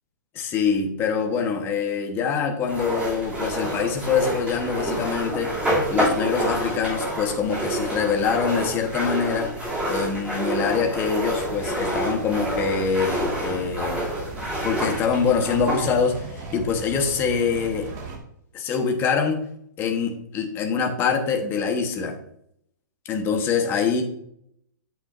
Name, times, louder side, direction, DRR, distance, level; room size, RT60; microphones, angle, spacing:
voice 1, 0.3-5.5 5.9-9.5 9.9-14.1 14.6-17.9 18.5-19.5 19.8-22.2 23.1-24.0, left 6 dB, 20° left, 4 dB, 1.1 m, -24 dB
sound 1, 2.7-15.9, right 1 dB, 10° right, 2.8 m, -28 dB
sound 2, 11.4-18.2, right 3 dB, 30° right, 1.9 m, -37 dB
8.6 x 8.0 x 2.6 m, 0.72 s
hypercardioid pair, 155°, 11 cm